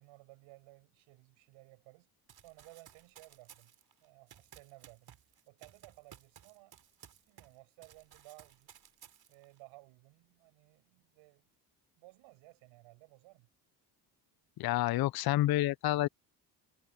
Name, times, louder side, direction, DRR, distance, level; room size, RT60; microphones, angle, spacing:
voice 1, 0.0-2.1 2.4-3.7 4.0-5.2 5.5-6.7 7.3-8.8 9.3-11.5 12.0-13.5, right 22 dB, 80° right, 5.6 m, -58 dB
Run, 2.3-7.6 7.8-9.6, right 9 dB, 50° right, 3.2 m, -58 dB
voice 2, 14.6-16.1, left 15 dB, 50° left, 0.6 m, -29 dB
supercardioid pair, 65°, 47 cm